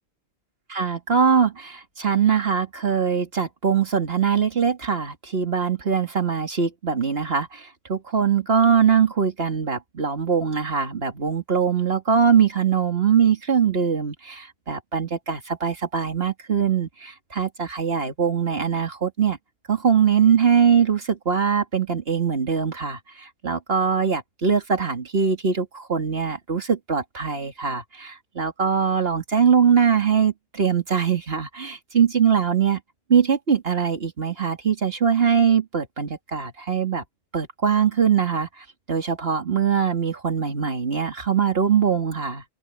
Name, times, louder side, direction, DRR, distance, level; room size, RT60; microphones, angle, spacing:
voice 1, 0.7-19.4 19.7-32.8 33.1-37.0 37.3-38.5 38.9-42.4, right 7 dB, 65° right, 2.4 m, -22 dB
open air
omnidirectional pair, 1.1 m